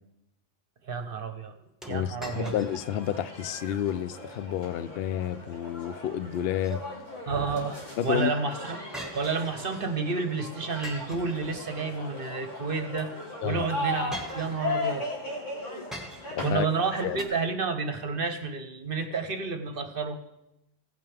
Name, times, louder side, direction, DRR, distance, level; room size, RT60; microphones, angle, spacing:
voice 1, 0.9-1.5 1.9-2.5 7.3-7.8 8.0-8.8 9.1-13.1 13.4-15.1 16.4-20.2, right 4 dB, 50° right, 7 dB, 1.0 m, -30 dB
sound 1, 1.8-3.0 3.4-3.5 4.1-4.4 6.3-7.2 8.9-9.9 10.8-12.0 13.1-13.3 14.1-15.0 15.9-16.5 17.2-17.3, equal, ahead, 1.5 m, -43 dB
voice 2, 1.9-6.8 8.0-8.3 13.4-13.7 16.3-16.7 17.0-17.2, left 10 dB, 65° left, 15 dB, 0.7 m, -30 dB
sound 2, 2.3-17.3, left 2 dB, 80° left, 2.6 m, -37 dB
16.5 x 9.0 x 3.4 m, 0.90 s
omnidirectional pair, 1.3 m